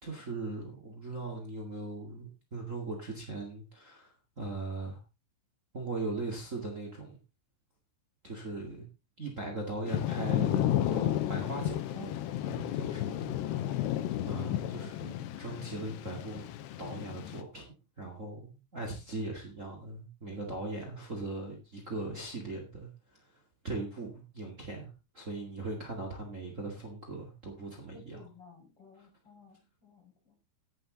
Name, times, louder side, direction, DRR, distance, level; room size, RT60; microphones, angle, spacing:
voice 1, 0.0-5.0 5.7-7.2 8.2-8.9 9.2-16.4 16.8-17.7 18.0-28.2 29.0-29.1, right 2 dB, 75° right, 1 dB, 0.7 m, -40 dB
Thunder / Rain, 9.9-17.4, left 12 dB, 80° left, 2.7 m, -32 dB
voice 2, 27.9-30.3, left 3 dB, 30° left, 0 dB, 6.0 m, -55 dB
11.0 x 9.8 x 3.9 m, 0.27 s
omnidirectional pair, 5.4 m